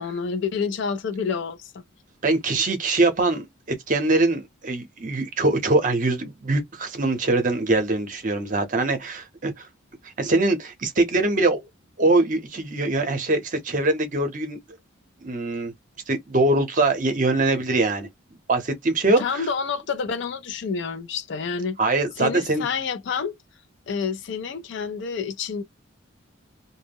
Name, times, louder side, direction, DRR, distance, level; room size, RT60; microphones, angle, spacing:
voice 1, 0.0-1.7 19.0-21.8 22.2-23.3 23.9-25.6, left 5 dB, 60° left, 0.3 m, -28 dB
voice 2, 2.2-9.7 10.2-11.6 12.0-14.6 15.2-15.7 16.1-18.1 18.5-19.5 21.8-22.7, right 2 dB, 40° right, 0.6 m, -23 dB
2.1 x 2.0 x 3.3 m
head